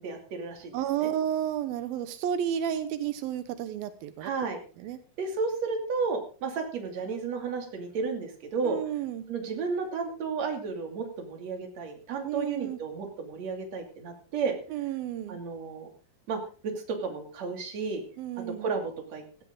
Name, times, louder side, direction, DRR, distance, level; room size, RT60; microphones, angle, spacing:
voice 1, 0.0-0.8 1.0-1.1 4.2-4.6 5.2-8.8 9.3-14.6 15.3-15.9 16.3-18.0 18.6-19.4, right 4 dB, 50° right, 4 dB, 3.7 m, -33 dB
voice 2, 0.7-4.3 4.8-5.0 8.6-9.3 12.2-12.8 14.7-15.4 18.2-18.7, right 10 dB, 90° right, 11 dB, 2.8 m, -31 dB
16.5 x 13.5 x 3.8 m, 0.36 s
omnidirectional pair, 4.1 m